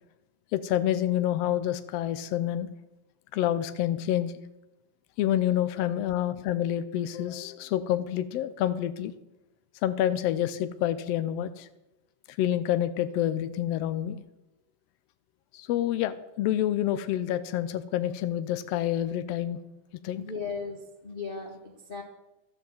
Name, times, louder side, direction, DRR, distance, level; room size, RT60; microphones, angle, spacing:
voice 1, 0.5-2.7 3.3-4.3 5.2-9.1 9.8-11.7 12.4-14.2 15.5-19.6 20.0-20.2, left 11 dB, 90° left, 13 dB, 1.4 m, -28 dB
voice 2, 20.2-22.0, left 4 dB, 70° left, 0 dB, 0.5 m, -37 dB
12.5 x 7.2 x 7.7 m, 0.98 s
omnidirectional pair, 3.5 m